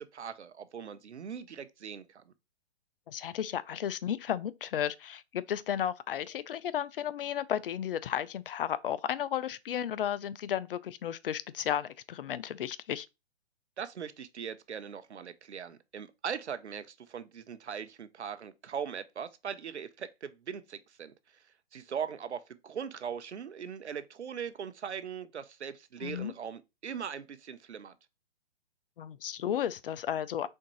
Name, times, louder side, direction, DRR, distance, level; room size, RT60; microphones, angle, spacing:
voice 1, 0.0-2.3 13.8-21.1 21.7-28.0, right 7 dB, 85° right, 0.7 m, -40 dB
voice 2, 3.1-13.1 26.0-26.3 29.0-30.5, left 10 dB, 55° left, 0.5 m, -33 dB
4.4 x 3.7 x 3.0 m
hypercardioid pair, 135°, 33 cm